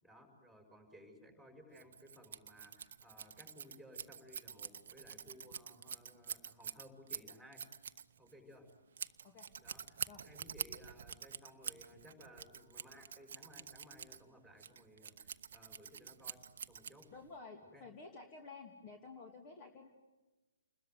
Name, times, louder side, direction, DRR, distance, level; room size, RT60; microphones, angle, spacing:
voice 1, 0.0-7.6 8.2-8.7 9.6-16.4 16.7-17.1 17.7-17.8, equal, 5° left, 3 dB, 5.9 m, -59 dB
Scissors, 1.7-17.4, right 7 dB, 50° right, 1.0 m, -47 dB
voice 2, 17.1-19.9, left 4 dB, 25° left, 3 dB, 2.6 m, -52 dB
29.5 x 21.5 x 9.5 m, 1.2 s
figure-of-eight pair, 125°, 0 cm